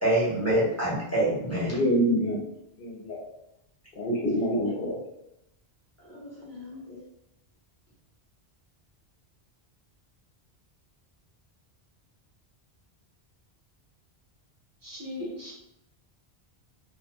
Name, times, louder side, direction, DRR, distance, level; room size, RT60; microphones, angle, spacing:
voice 1, 0.0-1.8 6.0-7.0, right 1 dB, 15° left, -8 dB, 0.7 m, -27 dB
voice 2, 1.6-2.5 2.8-3.3 4.0-5.0, equal, 65° left, 0 dB, 0.8 m, -26 dB
voice 3, 14.8-15.5, left 1 dB, 25° right, -4 dB, 0.5 m, -37 dB
2.6 x 2.1 x 2.8 m, 0.84 s
omnidirectional pair, 1.1 m